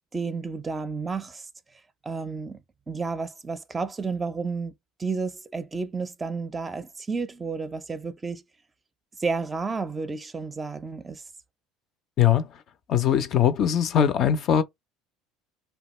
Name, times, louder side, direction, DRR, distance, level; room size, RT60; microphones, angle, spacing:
voice 1, 0.1-1.4 2.0-2.6 2.9-4.7 5.0-8.4 9.2-11.2, right 4 dB, 25° right, 0.4 m, -31 dB
voice 2, 12.9-14.6, left 9 dB, 50° left, 0.4 m, -21 dB
2.8 x 2.2 x 3.0 m
hypercardioid pair, 70°, 0 cm